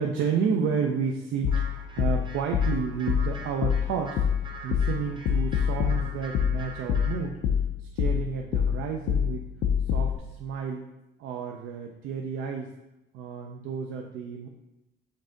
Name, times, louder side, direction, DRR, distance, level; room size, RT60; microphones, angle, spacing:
voice 1, 0.0-4.2 4.6-7.4 7.9-9.5 9.9-10.9 11.2-12.7 13.1-14.5, right 6 dB, 85° right, 2 dB, 0.4 m, -31 dB
sound 1, 1.4-10.2, left 8 dB, 85° left, 0.5 m, -26 dB
sound 2, 1.5-7.3, right 4 dB, 25° right, 0.6 m, -44 dB
5.3 x 2.6 x 3.8 m, 0.95 s
cardioid pair, 90°, 20 cm